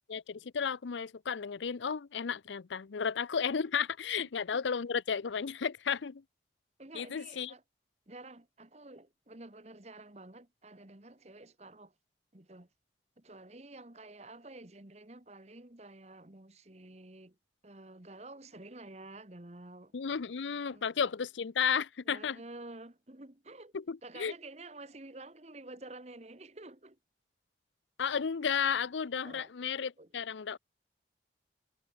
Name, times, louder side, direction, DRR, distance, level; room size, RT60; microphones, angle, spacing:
voice 1, 0.1-6.2 6.9-7.5 19.9-22.4 23.7-24.3 28.0-30.6, left 6 dB, 90° left, 0.6 m, -33 dB
voice 2, 6.8-7.6 8.1-11.9 12.3-12.7 13.2-17.4 17.6-19.9 20.7-20.9 22.0-23.7 24.0-27.0 29.2-29.5 30.0-30.1, right 2 dB, 35° right, 1.6 m, -50 dB
head